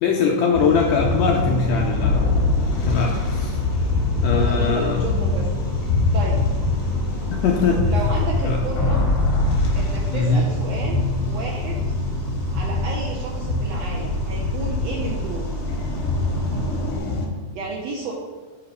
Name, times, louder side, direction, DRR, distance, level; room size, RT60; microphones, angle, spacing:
voice 1, 0.0-2.2 2.9-3.5 4.2-5.1 7.4-7.9 8.4-8.6 10.1-10.4, left 5 dB, 80° left, 0 dB, 1.6 m, -21 dB
sound 1, 0.5-17.3, left 3 dB, 65° left, 1.5 m, -24 dB
sound 2, 1.2-17.0, equal, 55° right, 1.4 m, -31 dB
voice 2, 4.3-5.5 6.1-6.4 7.9-9.0 9.7-11.0 11.3-11.8 12.5-15.6 17.5-18.1, right 3 dB, 75° right, -2 dB, 1.5 m, -32 dB
7.7 x 2.9 x 5.2 m, 1.4 s
omnidirectional pair, 3.6 m